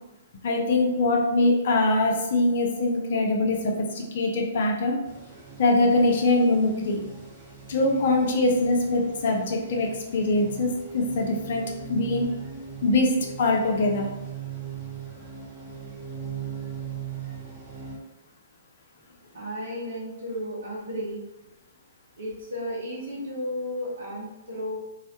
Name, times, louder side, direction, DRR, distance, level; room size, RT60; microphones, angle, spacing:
voice 1, 0.4-5.0 5.6-7.0 7.7-11.6 11.9-12.3 12.8-13.1 13.4-14.1, left 2 dB, 55° left, 1 dB, 0.5 m, -23 dB
sound 1, 5.0-18.0, right 7 dB, 20° right, 0.8 m, -40 dB
voice 2, 19.3-21.2 22.2-24.8, equal, 65° right, -5 dB, 1.0 m, -33 dB
2.3 x 2.1 x 2.7 m, 0.97 s
figure-of-eight pair, 115°, 0 cm